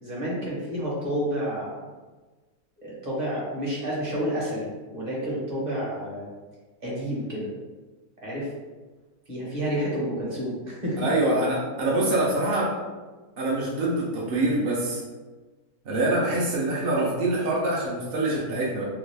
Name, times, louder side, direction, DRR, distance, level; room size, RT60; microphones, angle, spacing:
voice 1, 0.0-1.8 2.8-6.3 6.8-7.5 8.2-8.5 9.3-11.0, equal, 35° right, -6 dB, 0.8 m, -30 dB
voice 2, 11.0-12.7 13.4-15.0 15.8-18.8, right 1 dB, 65° right, -4 dB, 0.5 m, -25 dB
3.0 x 2.4 x 3.2 m, 1.3 s
omnidirectional pair, 1.7 m